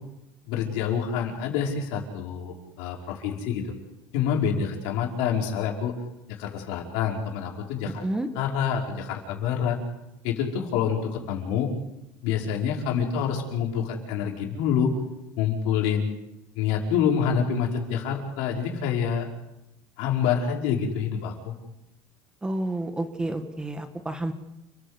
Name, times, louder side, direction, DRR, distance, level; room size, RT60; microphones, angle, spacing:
voice 1, 0.5-3.7 4.1-5.9 6.3-8.0 8.4-9.8 10.2-11.7 12.2-14.9 15.4-16.1 16.6-19.3 20.0-21.6, left 7 dB, 80° left, 1 dB, 5.3 m, -27 dB
voice 2, 7.8-8.3 22.4-24.3, right 1 dB, 10° right, 8 dB, 1.5 m, -30 dB
30.0 x 15.0 x 8.3 m, 0.90 s
cardioid pair, 155°, 9 cm